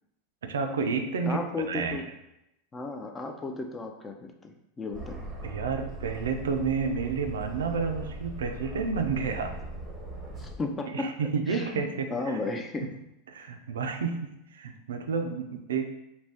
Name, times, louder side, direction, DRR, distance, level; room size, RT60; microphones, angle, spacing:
voice 1, 0.4-1.4 1.7-2.0 5.4-9.5 10.9-12.4 13.3-15.8, right 5 dB, 90° right, 6 dB, 0.3 m, -30 dB
voice 2, 1.2-2.1 2.7-5.3 10.4-11.1 11.5-11.8 12.1-12.9, left 3 dB, 20° left, 4 dB, 0.4 m, -34 dB
Aircraft, 4.9-10.6, right 2 dB, 20° right, 0.7 m, -40 dB
2.5 x 2.2 x 3.4 m, 0.85 s
hypercardioid pair, 110°, 0 cm